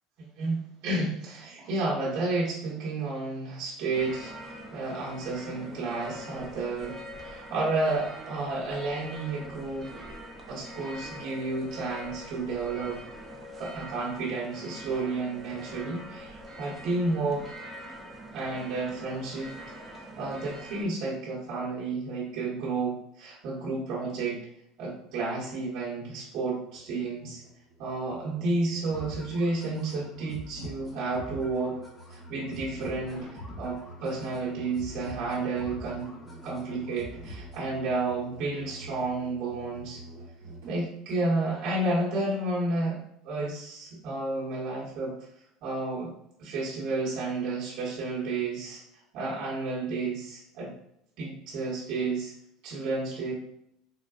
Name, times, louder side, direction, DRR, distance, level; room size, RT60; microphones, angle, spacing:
voice 1, 0.4-9.9 10.5-13.0 13.6-17.5 18.3-19.5 20.2-24.4 24.8-27.4 27.8-31.8 32.1-36.1 36.4-40.0 40.7-43.0 43.2-45.2 45.6-46.1 46.4-48.8 49.1-50.7 51.2-52.3 52.6-53.3, right 3 dB, 60° right, -5 dB, 1.1 m, -31 dB
sound 1, 3.9-20.8, equal, 20° right, 0.5 m, -44 dB
Musical instrument, 26.6-41.3, right 2 dB, 85° right, 1.0 m, -48 dB
sound 2, 28.9-37.9, left 1 dB, 20° left, 1.0 m, -45 dB
3.8 x 2.2 x 2.3 m, 0.78 s
supercardioid pair, 130°, 0 cm